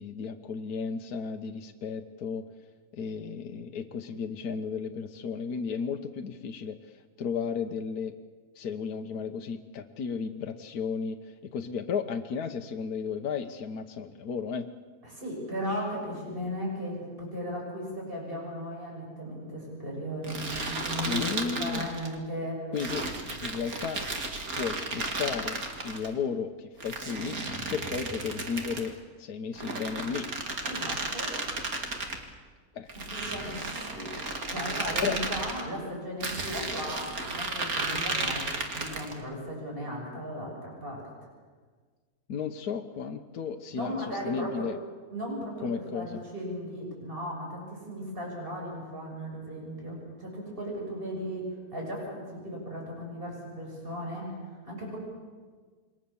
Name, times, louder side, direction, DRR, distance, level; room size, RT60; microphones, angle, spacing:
voice 1, 0.0-2.4 2.9-8.1 8.5-14.7 21.1-21.9 22.7-23.1 23.4-24.0 24.6-27.4 27.7-30.3 32.7-32.9 35.0-35.2 42.3-44.8 45.6-46.2, left 6 dB, 75° left, 5 dB, 1.5 m, -34 dB
voice 2, 15.0-22.7 30.7-31.3 33.1-34.2 34.5-38.5 38.7-41.0 43.7-44.7 45.1-45.7 45.9-54.3 54.6-55.0, equal, 35° right, -1 dB, 7.0 m, -36 dB
sound 1, 20.2-22.1 22.8-26.1 26.8-28.9 29.5-32.2 32.9-35.6 36.2-39.2, right 3 dB, 65° right, 2.8 m, -34 dB
27.5 x 23.0 x 7.1 m, 1.5 s
omnidirectional pair, 1.6 m